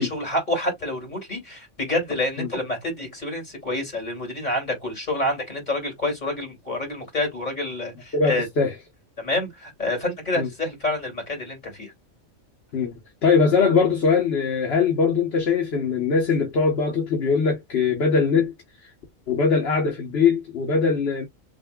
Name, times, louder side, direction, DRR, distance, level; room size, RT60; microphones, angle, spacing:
voice 1, 0.0-8.5 9.2-11.9, left 1 dB, 35° left, 2.7 m, -28 dB
voice 2, 8.1-8.7 10.4-10.5 12.7-18.9 19.3-21.3, left 5 dB, 55° left, 1.2 m, -21 dB
6.5 x 2.5 x 2.3 m
omnidirectional pair, 1.4 m